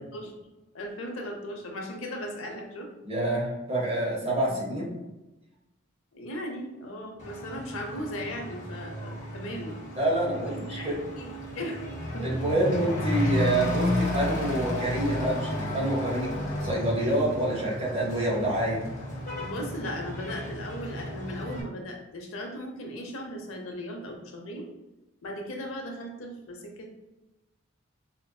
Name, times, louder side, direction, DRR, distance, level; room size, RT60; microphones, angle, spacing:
voice 1, 0.7-2.9 4.4-4.5 6.1-9.8 10.4-11.9 12.1-12.3 19.4-24.7 25.2-26.9, equal, 80° left, 2 dB, 0.6 m, -37 dB
voice 2, 3.1-4.9 10.0-11.0 12.2-16.3 16.6-18.8, right 1 dB, 30° right, -4 dB, 0.9 m, -27 dB
Truck / Accelerating revving vroom, 7.2-21.6, left 1 dB, 40° left, 0.6 m, -33 dB
4.3 x 2.5 x 2.2 m, 1.0 s
head